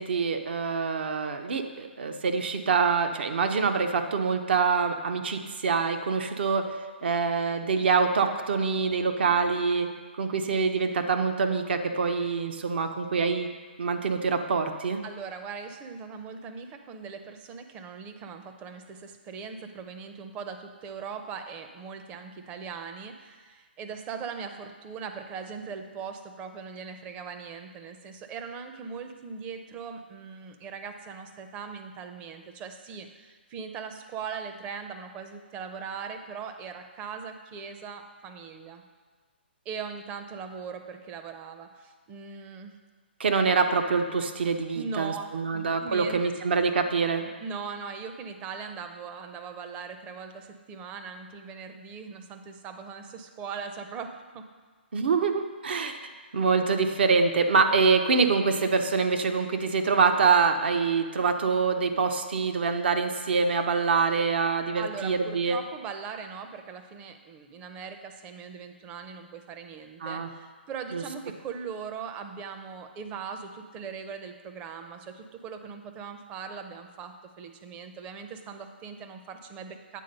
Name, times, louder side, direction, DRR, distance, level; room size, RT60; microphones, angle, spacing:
voice 1, 0.0-6.7 7.0-9.9 10.2-13.5 13.8-15.0 43.2-47.2 54.9-56.0 56.3-65.6 70.0-70.3 70.9-71.0, right 5 dB, 65° right, 6 dB, 0.7 m, -25 dB
voice 2, 15.0-38.8 39.7-42.8 44.7-46.2 47.4-54.4 64.8-80.0, right 6 dB, 20° right, 6 dB, 0.5 m, -40 dB
8.3 x 3.8 x 5.3 m, 1.4 s
hypercardioid pair, 145°, 6 cm